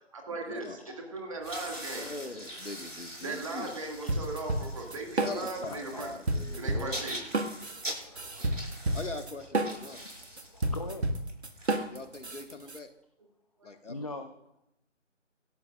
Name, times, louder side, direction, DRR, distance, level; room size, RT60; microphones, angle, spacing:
voice 1, 0.1-2.1 3.2-6.2 6.6-7.3 13.6-13.7, right 3 dB, 25° right, 2 dB, 2.2 m, -38 dB
sound 1, 1.3-12.4, equal, 85° right, 5.6 m, -44 dB
voice 2, 1.9-3.8 5.2-7.0 8.9-10.1 11.9-12.9 13.6-14.0, left 3 dB, 70° left, 6 dB, 1.8 m, -41 dB
sound 2, 4.1-5.8 6.0-12.8, right 1 dB, 60° right, 1.8 m, -31 dB
voice 3, 5.7-6.1 6.9-7.3 7.8-9.0 10.3-11.1 13.6-14.3, left 2 dB, 30° left, 6 dB, 0.6 m, -44 dB
26.5 x 13.0 x 2.5 m, 0.81 s
figure-of-eight pair, 155°, 38 cm